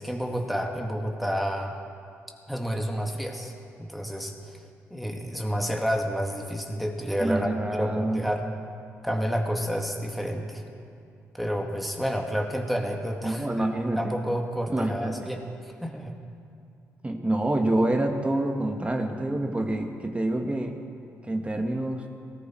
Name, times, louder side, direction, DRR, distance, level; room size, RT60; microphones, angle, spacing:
voice 1, 0.0-1.8 2.5-3.5 3.8-4.6 4.9-8.5 9.0-10.6 11.3-13.6 14.0-15.5 15.8-16.1, equal, ahead, 1 dB, 2.1 m, -29 dB
voice 2, 7.2-8.2 13.2-14.2 14.7-15.3 17.0-20.8 21.3-22.0, right 1 dB, 20° right, 4 dB, 1.6 m, -27 dB
19.0 x 14.5 x 4.6 m, 2.5 s
supercardioid pair, 65°, 6 cm